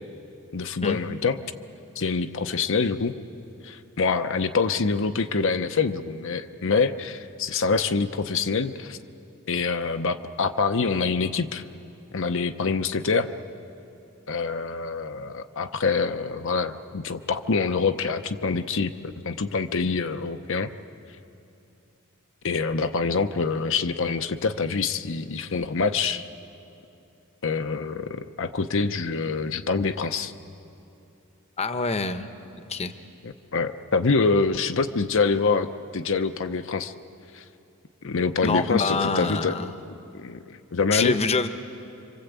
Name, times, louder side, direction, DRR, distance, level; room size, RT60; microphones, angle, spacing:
voice 1, 0.5-1.4 2.0-3.2 3.6-9.0 9.5-11.6 12.1-13.3 14.3-18.9 19.2-20.7 22.4-26.2 27.4-30.3 33.2-35.7 35.9-36.9 37.3-37.4 38.0-39.6 40.1-41.2, left 4 dB, 65° left, 8 dB, 0.7 m, -25 dB
voice 2, 31.6-32.3 32.7-32.9 38.4-39.7 40.9-41.5, left 3 dB, 30° left, 9 dB, 0.9 m, -25 dB
26.5 x 25.5 x 8.2 m, 2.8 s
head